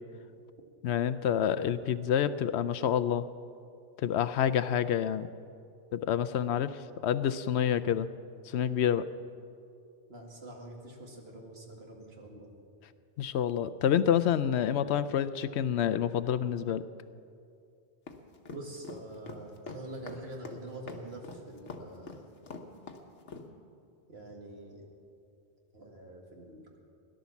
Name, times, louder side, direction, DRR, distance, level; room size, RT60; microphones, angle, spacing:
voice 1, 0.8-3.3 4.0-5.3 5.9-8.1 8.5-9.0 13.2-16.8, left 9 dB, 75° left, 13 dB, 0.8 m, -28 dB
voice 2, 10.1-12.5 18.5-22.2 24.1-24.9 25.7-26.8, right 1 dB, 60° right, 0 dB, 2.3 m, -45 dB
sound 1, 18.1-23.5, left 4 dB, 90° left, 1.4 m, -44 dB
17.0 x 11.5 x 7.1 m, 2.5 s
omnidirectional pair, 1.2 m